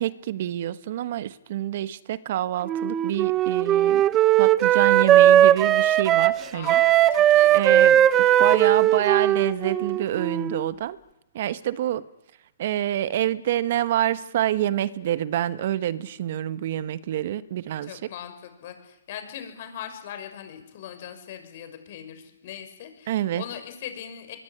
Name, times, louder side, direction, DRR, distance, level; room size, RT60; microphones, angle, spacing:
voice 1, 0.0-4.1 4.4-6.8 7.5-11.0 11.3-12.1 12.6-18.1 23.1-23.5, right 12 dB, 55° right, 1.2 m, -27 dB
Wind instrument woodwind instrument, 2.7-10.7, right 12 dB, 20° right, 0.9 m, -18 dB
voice 2, 6.5-8.6 17.8-24.4, left 9 dB, 50° left, 6.5 m, -40 dB
22.5 x 22.5 x 10.0 m
hypercardioid pair, 145°, 0 cm